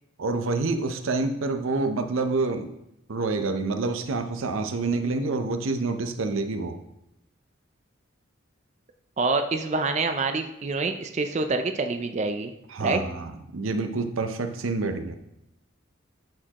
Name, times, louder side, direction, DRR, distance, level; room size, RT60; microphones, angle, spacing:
voice 1, 0.2-2.7 3.1-6.8 12.7-15.2, right 3 dB, 90° right, 7 dB, 0.6 m, -27 dB
voice 2, 9.2-12.5 12.8-13.0, right 3 dB, 35° right, 7 dB, 0.4 m, -26 dB
11.5 x 4.4 x 3.0 m, 0.83 s
head